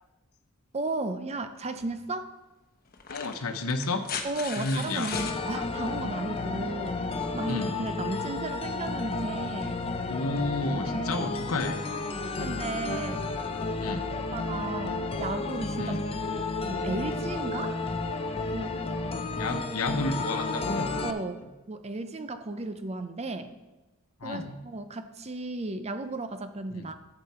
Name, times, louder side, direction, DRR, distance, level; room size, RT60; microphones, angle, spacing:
voice 1, 0.7-2.3 4.2-7.0 7.3-9.8 10.7-11.3 12.4-13.3 14.3-16.0 16.3-17.8 18.5-18.8 19.5-19.6 21.0-21.4 21.7-23.5 24.2-27.0, right 2 dB, 30° right, 9 dB, 0.6 m, -34 dB
sound 1, 1.8-1.9 2.9-5.4 6.9-7.0, left 6 dB, 45° left, 1.0 m, -37 dB
voice 2, 3.1-4.0 4.6-5.1 6.6-6.7 7.5-7.7 10.1-11.8 12.3-12.5 13.8-14.1 15.8-16.0 19.4-20.9 24.2-24.6 26.7-26.9, left 2 dB, 90° left, 7 dB, 1.0 m, -31 dB
sound 2, 5.1-21.1, left 3 dB, 25° left, 0.6 m, -32 dB
12.0 x 6.9 x 4.4 m, 1.1 s
head